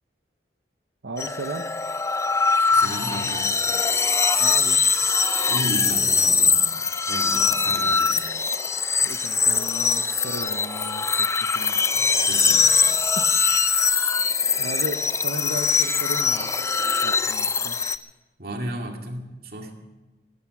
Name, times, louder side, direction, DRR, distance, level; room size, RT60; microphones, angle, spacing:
voice 1, 1.0-1.6 4.4-4.8 9.0-11.8 14.6-16.5 17.0-17.8, right 2 dB, 85° right, 6 dB, 0.8 m, -35 dB
sound 1, 1.2-18.0, left 5 dB, 15° left, 0.5 m, -22 dB
voice 2, 2.7-3.5 5.4-6.6 7.1-8.2 11.9-12.7 18.4-19.7, right 1 dB, 55° right, 2 dB, 2.3 m, -34 dB
14.5 x 14.5 x 6.0 m, 1.1 s
head